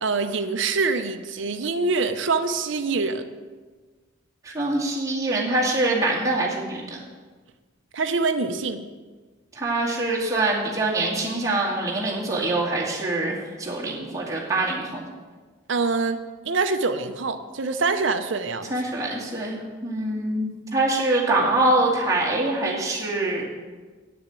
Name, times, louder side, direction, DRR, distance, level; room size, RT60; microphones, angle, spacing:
voice 1, 0.0-3.2 7.9-8.8 15.7-16.2 16.5-18.7, right 4 dB, 70° right, 7 dB, 0.7 m, -25 dB
voice 2, 4.4-7.0 9.6-15.0 18.7-23.4, right 2 dB, 15° right, -5 dB, 2.2 m, -24 dB
8.7 x 6.9 x 8.1 m, 1.4 s
head